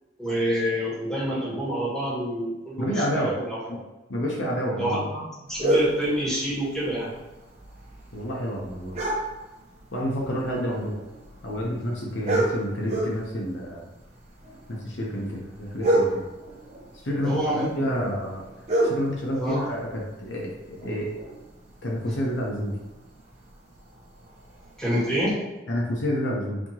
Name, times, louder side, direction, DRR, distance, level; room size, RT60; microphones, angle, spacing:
voice 1, 0.2-3.8 4.8-7.1 17.2-18.1 19.3-19.6 24.8-25.6, equal, 5° left, -9 dB, 1.5 m, -27 dB
voice 2, 2.8-3.3 3.7-3.8 4.1-5.1 8.1-8.9 9.9-11.0 11.4-13.8 14.7-16.1 17.0-18.4 18.8-21.1 21.8-22.7 25.7-26.6, equal, 80° left, -2 dB, 0.8 m, -29 dB
bin dog night, 5.5-25.3, right 1 dB, 35° right, 0.9 m, -32 dB
4.2 x 2.9 x 2.9 m, 1.1 s
head